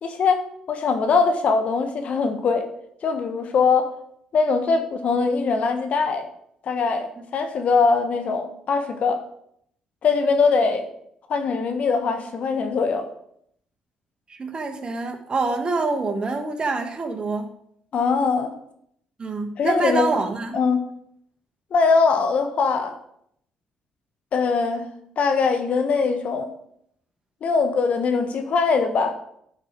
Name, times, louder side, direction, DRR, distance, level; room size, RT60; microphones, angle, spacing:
voice 1, 0.0-2.7 3.0-3.9 4.3-6.3 6.6-9.2 10.0-10.8 11.3-13.1 17.9-18.5 19.6-20.0 20.5-20.8 21.7-23.0 24.3-24.9 25.2-26.5 27.4-29.1, left 4 dB, 60° left, 6 dB, 1.3 m, -21 dB
voice 2, 14.3-17.5 19.2-20.6, right 3 dB, 35° right, 5 dB, 1.5 m, -26 dB
10.5 x 4.8 x 5.1 m, 0.70 s
supercardioid pair, 60°, 3 cm